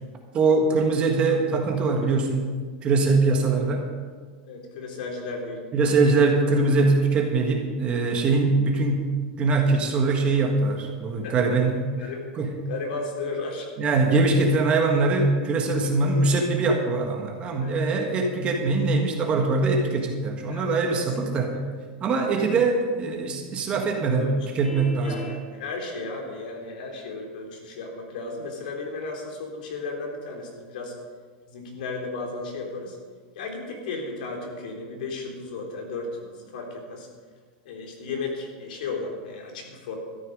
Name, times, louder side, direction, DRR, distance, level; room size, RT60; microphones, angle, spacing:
voice 1, 0.3-2.5 2.8-3.9 5.7-9.1 9.4-11.8 12.4-12.6 13.8-21.6 22.0-24.3 24.5-25.2, right 3 dB, 25° right, 2 dB, 1.6 m, -22 dB
voice 2, 4.5-5.7 11.2-11.6 12.0-12.3 12.7-13.7 17.6-17.8 20.5-21.0 21.3-21.5 22.1-22.2 24.2-24.3 25.0-30.9 31.5-33.0 33.4-37.1 37.7-40.0, left 3 dB, 70° left, 0 dB, 3.5 m, -34 dB
Vehicle horn car horn honking, 24.6-25.4, equal, 5° left, 1.3 m, -39 dB
13.0 x 11.0 x 5.3 m, 1.5 s
supercardioid pair, 165°, 5 cm